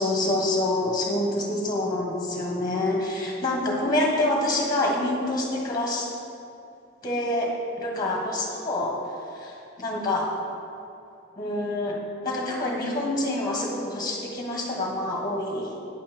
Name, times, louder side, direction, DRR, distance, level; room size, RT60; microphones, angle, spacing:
voice 1, 0.0-6.1 7.0-9.0 9.8-10.3 11.4-15.8, left 1 dB, 20° left, -1 dB, 1.4 m, -26 dB
9.4 x 5.7 x 6.7 m, 2.6 s
head